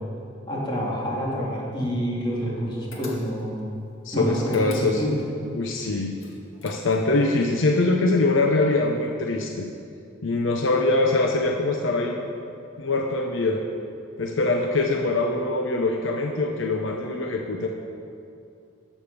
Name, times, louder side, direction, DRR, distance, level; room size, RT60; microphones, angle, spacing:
voice 1, 0.5-3.5 4.1-5.2, equal, 25° left, -5 dB, 2.7 m, -27 dB
sound 1, 2.9-3.6 4.4-5.3 6.2-7.2, left 2 dB, 85° left, 2.1 m, -42 dB
voice 2, 4.0-5.0 5.5-6.1 6.6-9.7 10.2-12.3 12.8-13.6 14.2-17.7, left 2 dB, 70° left, 2 dB, 0.8 m, -23 dB
11.5 x 7.4 x 6.9 m, 2.5 s
head